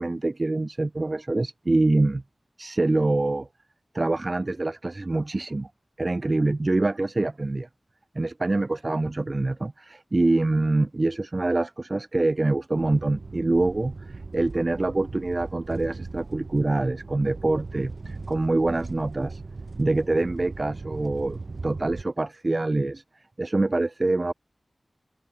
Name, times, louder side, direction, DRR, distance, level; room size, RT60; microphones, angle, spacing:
voice 1, 0.0-2.2 2.6-3.5 3.9-5.7 6.0-7.7 8.1-19.4 19.8-23.0 23.4-24.3, right 2 dB, 40° right, 1.0 m, -25 dB
sound 1, 12.8-22.0, right 3 dB, 65° right, 5.5 m, -38 dB
wide cardioid pair, 80°, 0 cm